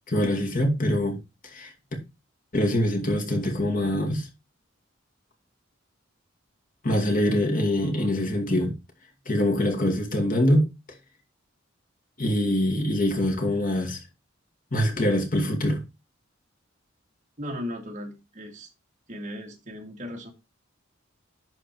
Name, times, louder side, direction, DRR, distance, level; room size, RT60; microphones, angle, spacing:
voice 1, 0.1-1.2 1.5-1.7 2.5-4.3 6.8-8.7 9.3-10.7 12.2-14.0 14.7-15.8, left 1 dB, 45° left, 2.4 m, -24 dB
voice 2, 17.4-18.7 19.1-20.3, left 1 dB, 40° right, 2.2 m, -36 dB
11.5 x 4.4 x 4.6 m
head